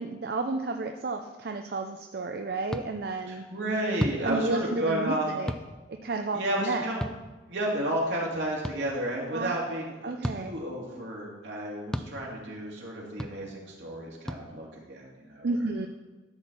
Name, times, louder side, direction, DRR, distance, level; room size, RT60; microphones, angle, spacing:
voice 1, 0.0-3.4 4.2-5.5 6.0-6.9 9.3-9.6 10.0-10.5 15.4-15.9, right 3 dB, 55° right, 5 dB, 0.5 m, -31 dB
sound 1, 2.7-2.8 4.0-4.2 5.5-5.6 7.0-7.2 8.6-8.8 10.2-10.4 11.9-12.1 13.2-13.3 14.3-14.4, equal, 5° left, 0.4 m, -31 dB
voice 2, 3.3-5.3 6.3-7.0 7.5-15.5, right 1 dB, 80° right, -3 dB, 2.6 m, -32 dB
12.5 x 4.4 x 7.0 m, 1.2 s
head